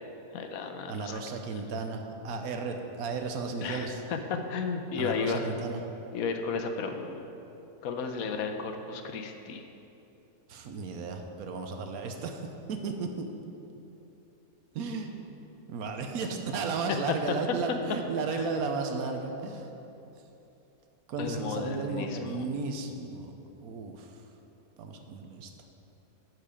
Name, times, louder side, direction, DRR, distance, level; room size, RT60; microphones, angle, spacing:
voice 1, 0.3-1.2 1.5-1.6 3.6-5.6 6.1-7.3 7.8-9.7 18.3-18.4 21.2-22.4, left 5 dB, 75° left, 5 dB, 1.1 m, -34 dB
voice 2, 0.9-4.0 4.9-5.8 10.5-13.3 14.7-15.1 15.7-19.7 21.1-24.2 24.8-25.5, right 4 dB, 80° right, 4 dB, 1.2 m, -34 dB
12.0 x 4.7 x 5.0 m, 2.9 s
omnidirectional pair, 1.6 m